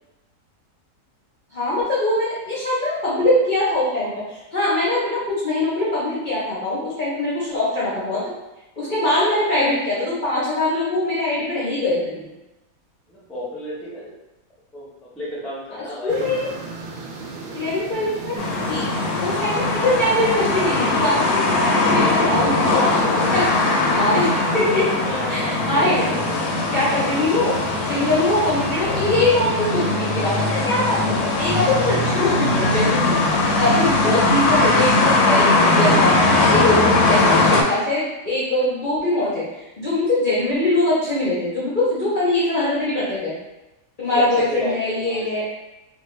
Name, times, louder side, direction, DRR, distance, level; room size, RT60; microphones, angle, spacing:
voice 1, 1.5-8.2 8.8-12.3 15.7-16.5 17.5-18.3 18.7-18.8 19.2-23.5 23.9-24.9 25.3-26.2 26.5-27.6 27.9-33.2 33.6-39.4 39.8-43.3 44.0-45.4, left 1 dB, 45° left, -9 dB, 0.6 m, -22 dB
voice 2, 13.1-14.1 14.7-14.9 15.1-16.3 25.0-25.4 25.7-25.9 44.1-45.5, equal, ahead, -7 dB, 0.5 m, -32 dB
sound 1, 16.1-33.9, right 4 dB, 75° right, 1.0 m, -36 dB
sound 2, 18.4-37.6, left 2 dB, 90° left, 1.1 m, -20 dB
2.5 x 2.4 x 3.1 m, 0.98 s
omnidirectional pair, 1.6 m